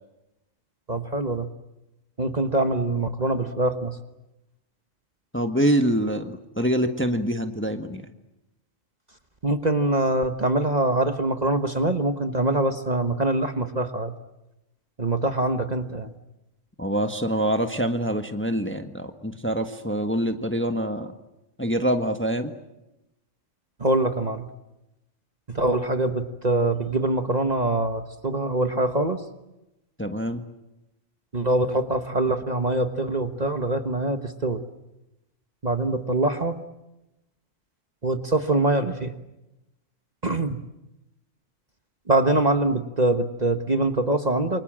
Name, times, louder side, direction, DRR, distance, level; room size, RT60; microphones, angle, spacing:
voice 1, 0.9-1.5 2.2-4.0 9.4-14.1 15.0-16.1 23.8-24.5 25.5-29.2 31.3-34.6 35.6-36.6 38.0-39.1 40.2-40.6 42.1-44.6, right 2 dB, 30° right, 7 dB, 1.4 m, -24 dB
voice 2, 5.3-8.1 16.8-21.1 21.6-22.5 30.0-30.4, right 1 dB, 10° left, 6 dB, 1.4 m, -25 dB
29.0 x 24.5 x 7.5 m, 0.94 s
omnidirectional pair, 1.4 m